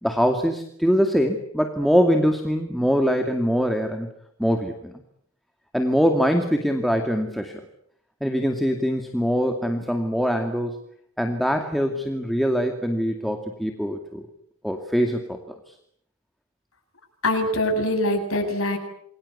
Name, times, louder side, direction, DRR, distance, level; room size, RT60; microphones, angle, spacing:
voice 1, 0.0-4.1 4.4-4.8 5.7-7.6 8.2-10.8 11.2-14.3 14.6-15.4, equal, ahead, 3 dB, 2.4 m, -23 dB
voice 2, 17.2-18.8, left 1 dB, 80° left, 5 dB, 7.7 m, -23 dB
28.0 x 23.5 x 8.5 m, 0.71 s
head